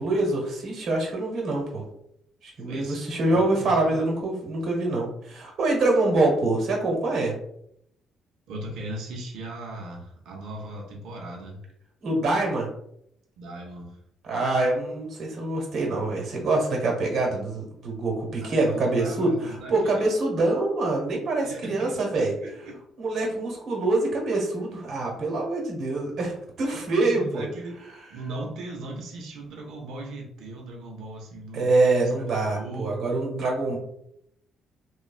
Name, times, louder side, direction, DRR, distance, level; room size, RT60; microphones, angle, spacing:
voice 1, 0.0-1.8 2.4-7.3 12.0-12.7 14.3-22.3 23.0-27.5 31.5-33.8, right 2 dB, 60° right, -1 dB, 1.2 m, -25 dB
voice 2, 2.7-4.0 8.5-11.6 13.4-14.0 18.4-20.1 21.4-22.8 27.0-27.8 28.1-31.8 32.3-33.0, right 2 dB, 80° right, 0 dB, 0.7 m, -38 dB
3.1 x 2.3 x 2.3 m, 0.73 s
cardioid pair, 95°, 0 cm